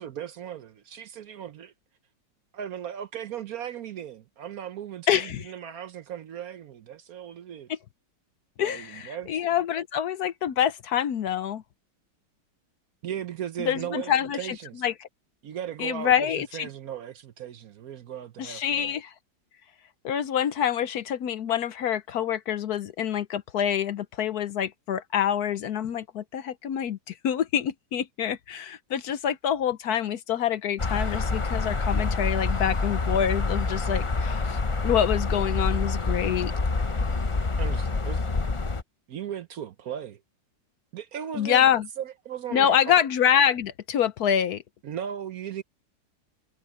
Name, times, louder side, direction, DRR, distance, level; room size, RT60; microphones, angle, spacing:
voice 1, 0.0-1.7 2.5-7.7 8.6-9.3 13.0-14.8 15.4-18.9 37.6-38.2 39.1-40.2 40.9-41.7 42.0-42.8 44.8-45.6, right 9 dB, 65° right, 1.1 m, -37 dB
voice 2, 5.1-5.5 7.7-7.8 8.6-11.6 13.6-15.1 15.8-16.7 18.4-19.1 20.0-36.5 41.3-41.9 42.5-44.6, left 9 dB, 65° left, 1.1 m, -26 dB
sound 1, 30.8-38.8, left 3 dB, 40° left, 0.4 m, -27 dB
omnidirectional pair, 2.0 m